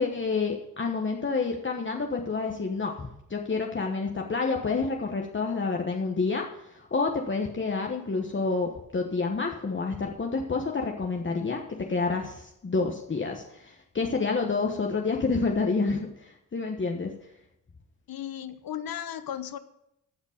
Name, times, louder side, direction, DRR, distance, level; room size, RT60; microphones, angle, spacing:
voice 1, 0.0-17.1, left 4 dB, 35° left, 1 dB, 1.3 m, -29 dB
voice 2, 18.1-19.6, left 10 dB, 75° left, 12 dB, 1.0 m, -35 dB
15.0 x 5.1 x 6.6 m, 0.81 s
cardioid pair, 85°, 35 cm